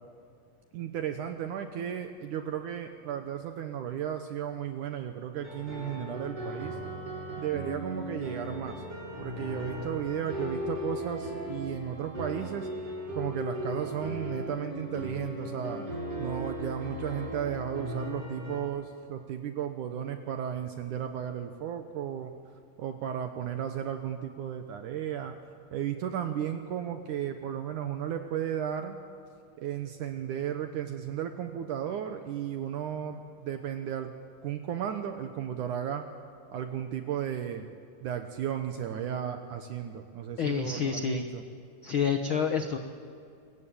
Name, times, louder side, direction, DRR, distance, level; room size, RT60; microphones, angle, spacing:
voice 1, 0.7-6.8 7.4-8.8 9.2-12.7 13.1-15.8 16.2-22.3 22.8-25.3 25.7-29.0 29.6-34.1 34.4-36.0 36.5-37.7 38.0-41.4, right 9 dB, 70° right, 6 dB, 2.4 m, -34 dB
sound 1, 5.3-18.6, equal, 40° right, 9.1 m, -37 dB
voice 2, 40.4-41.3 41.8-42.8, left 7 dB, 75° left, 6 dB, 1.1 m, -28 dB
27.0 x 23.0 x 9.0 m, 2.4 s
omnidirectional pair, 4.1 m